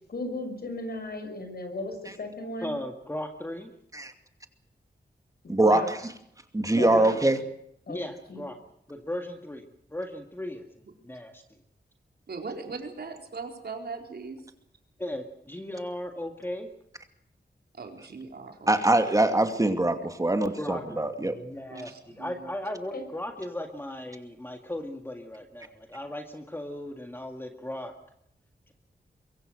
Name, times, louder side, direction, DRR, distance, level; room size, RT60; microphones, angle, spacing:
voice 1, 0.1-2.7 5.6-5.9 6.8-7.1 7.9-8.4 22.9-23.0, left 2 dB, 65° left, 6 dB, 6.3 m, -35 dB
voice 2, 2.6-3.7 7.9-8.6 8.9-9.6 9.9-10.7 11.0-11.4 15.0-16.7 20.6-27.9, left 1 dB, 15° left, 4 dB, 2.0 m, -37 dB
voice 3, 5.5-6.0 6.5-7.4 18.7-21.3, right 2 dB, 20° right, 7 dB, 2.4 m, -23 dB
voice 4, 12.3-14.4 17.7-18.8 21.7-22.5, right 4 dB, 70° right, 4 dB, 4.4 m, -39 dB
23.5 x 23.5 x 6.6 m, 0.74 s
wide cardioid pair, 140°, 17 cm